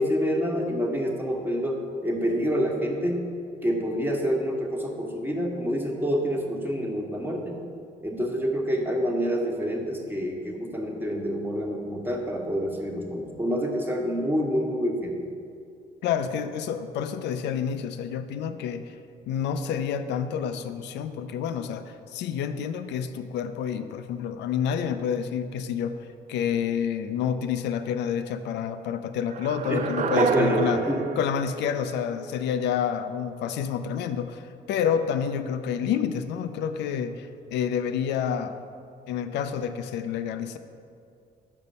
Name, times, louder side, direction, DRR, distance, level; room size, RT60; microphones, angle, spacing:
voice 1, 0.0-3.2 3.6-7.6 8.0-15.1 29.7-29.8 30.1-31.0, equal, 10° right, 0 dB, 1.2 m, -27 dB
voice 2, 16.0-18.9 19.3-26.0 26.3-30.8 31.2-34.4 34.7-38.6 39.1-40.6, left 8 dB, 80° left, 10 dB, 0.4 m, -28 dB
sound 1, 29.3-32.4, right 6 dB, 45° right, 0.4 m, -29 dB
5.3 x 5.2 x 5.4 m, 2.4 s
supercardioid pair, 60°, 18 cm